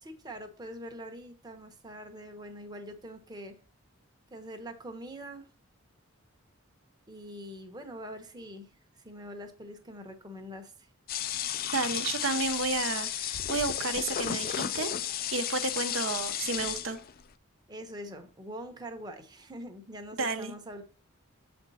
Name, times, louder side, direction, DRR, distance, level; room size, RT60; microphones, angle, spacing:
voice 1, 0.0-3.6 4.3-5.5 7.1-8.7 9.0-10.9 17.7-20.8, equal, 20° right, 1.0 m, -44 dB
sound 1, 11.1-17.2, left 10 dB, 45° left, 0.4 m, -33 dB
voice 2, 11.7-14.9 15.3-17.0 20.2-20.5, right 3 dB, 65° right, 0.9 m, -31 dB
7.6 x 4.4 x 4.1 m
head